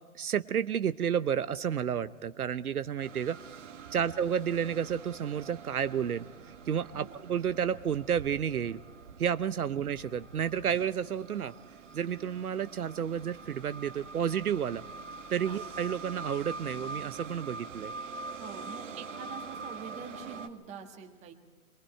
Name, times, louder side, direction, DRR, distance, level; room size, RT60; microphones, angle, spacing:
voice 1, 0.1-3.4 3.9-6.3 6.7-8.8 9.2-11.5 11.9-14.8 15.3-17.9, right 8 dB, 75° right, 13 dB, 0.9 m, -31 dB
sound 1, 3.0-20.5, right 4 dB, 55° right, 2.1 m, -44 dB
voice 2, 18.4-21.3, right 6 dB, 15° right, 4 dB, 1.7 m, -45 dB
27.0 x 23.0 x 4.5 m, 1.4 s
hypercardioid pair, 140°, 44 cm